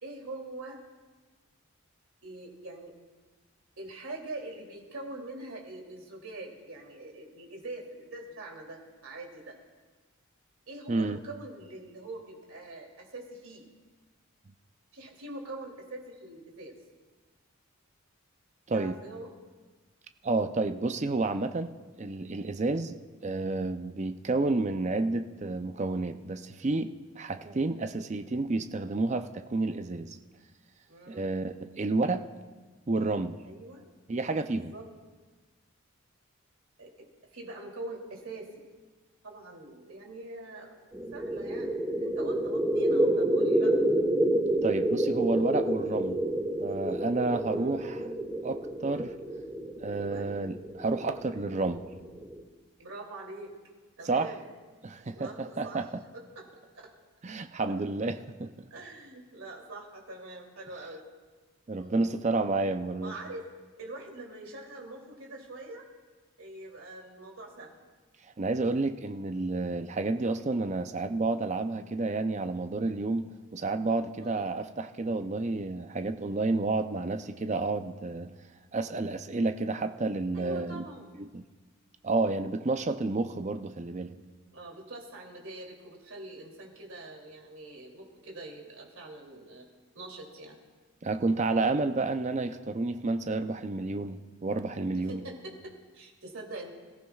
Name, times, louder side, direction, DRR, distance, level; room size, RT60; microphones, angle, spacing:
voice 1, 0.0-0.8 2.2-2.9 3.8-9.6 10.7-13.7 14.9-16.8 18.7-19.3 30.9-31.3 33.4-33.8 34.7-34.9 36.8-38.6 39.2-40.8 41.1-43.8 47.5-47.8 49.8-50.3 52.8-53.6 54.0-54.4 55.1-55.8 56.1-56.5 56.8-56.9 57.7-57.8 58.7-61.1 61.8-62.0 63.0-63.5 63.8-65.9 66.4-67.7 74.2-74.5 80.3-81.1 84.5-89.7 89.9-90.6 95.1-96.7, right 2 dB, 70° right, 0 dB, 2.8 m, -44 dB
voice 2, 10.9-11.2 18.7-19.0 20.2-23.0 23.2-30.2 31.1-32.3 32.9-33.4 34.1-34.7 44.6-46.2 46.6-48.1 48.4-49.1 49.8-51.9 54.0-54.3 54.8-55.9 57.2-58.5 61.7-63.2 68.4-78.3 78.7-80.9 81.2-81.4 82.0-84.2 91.0-95.2, right 3 dB, 30° right, 9 dB, 0.5 m, -30 dB
sound 1, 40.9-52.4, right 1 dB, 10° right, 1.3 m, -29 dB
26.0 x 14.5 x 2.4 m, 1.3 s
head